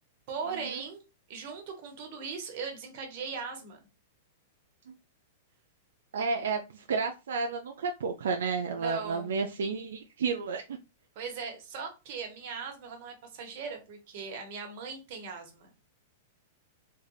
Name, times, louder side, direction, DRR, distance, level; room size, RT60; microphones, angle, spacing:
voice 1, 0.3-1.0 1.3-3.8 8.7-9.3 11.1-15.7, right 5 dB, 50° right, 1.1 m, -39 dB
voice 2, 6.1-10.6, right 4 dB, 85° right, 0.4 m, -31 dB
3.2 x 2.3 x 3.2 m
hypercardioid pair, 140°, 0 cm